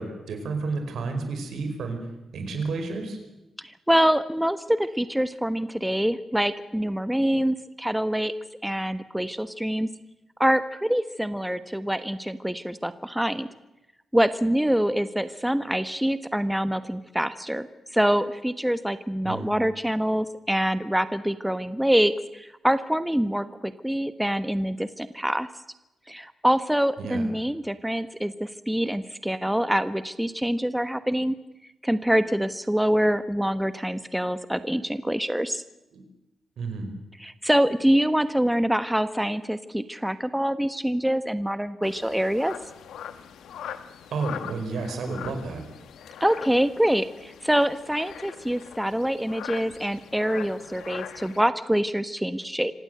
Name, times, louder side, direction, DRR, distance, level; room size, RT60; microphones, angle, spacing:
voice 1, 0.0-2.0 2.3-3.2 19.2-19.5 27.0-27.3 35.9-36.0 36.6-36.9 44.1-45.6, right 3 dB, 75° right, 6 dB, 5.0 m, -31 dB
voice 2, 3.6-8.3 8.6-9.9 10.4-13.5 14.1-17.7 17.9-25.5 26.1-31.3 31.8-35.6 37.2-42.5 46.2-52.7, equal, 5° right, 12 dB, 1.2 m, -25 dB
sound 1, 41.8-51.4, left 9 dB, 85° left, 1.2 m, -41 dB
26.5 x 16.5 x 8.0 m, 0.96 s
supercardioid pair, 50°, 0 cm